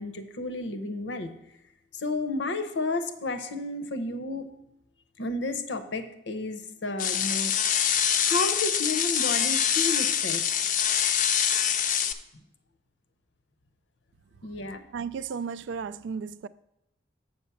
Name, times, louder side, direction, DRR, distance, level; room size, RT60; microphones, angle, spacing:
voice 1, 0.0-1.3 1.9-4.5 5.2-7.5 8.2-10.7 14.4-14.9, left 2 dB, 80° left, 0.8 m, -32 dB
sound 1, 7.0-12.1, left 8 dB, 45° left, 0.5 m, -25 dB
voice 2, 14.9-16.5, right 6 dB, 75° right, 0.3 m, -34 dB
7.2 x 5.0 x 7.1 m
head